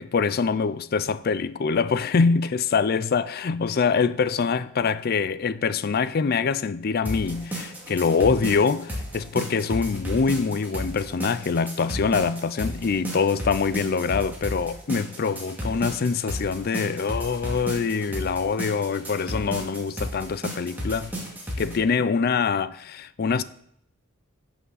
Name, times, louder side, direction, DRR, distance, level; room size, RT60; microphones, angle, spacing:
voice 1, 0.0-21.1 21.6-23.4, left 5 dB, 45° left, 0.4 m, -24 dB
sound 1, 7.1-21.8, equal, 10° right, 2.3 m, -33 dB
15.0 x 6.0 x 4.0 m
head